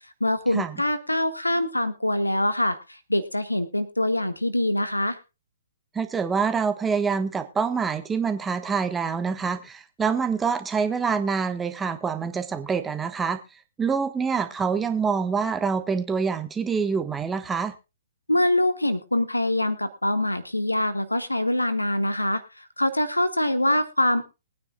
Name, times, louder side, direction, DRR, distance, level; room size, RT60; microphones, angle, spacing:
voice 1, 0.2-5.2 18.3-24.2, left 1 dB, 85° left, 11 dB, 1.6 m, -24 dB
voice 2, 5.9-13.4 13.8-17.7, right 5 dB, 10° right, 9 dB, 1.2 m, -26 dB
22.5 x 9.6 x 2.3 m, 0.27 s
figure-of-eight pair, 125°, 0 cm